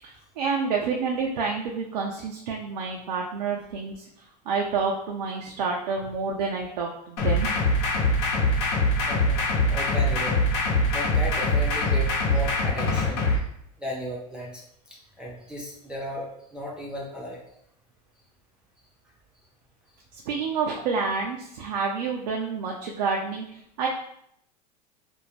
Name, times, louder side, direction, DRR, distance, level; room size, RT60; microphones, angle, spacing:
voice 1, 0.4-3.9 4.5-7.6 20.3-23.4 23.8-23.9, right 5 dB, 85° right, 0 dB, 0.5 m, -28 dB
sound 1, 7.2-13.4, left 1 dB, 70° left, 0.9 m, -23 dB
voice 2, 9.1-9.4 9.7-10.4 10.9-13.3 13.8-14.6 14.9-17.4, equal, 5° right, -4 dB, 0.5 m, -35 dB
2.5 x 2.1 x 3.1 m, 0.73 s
hypercardioid pair, 105°, 21 cm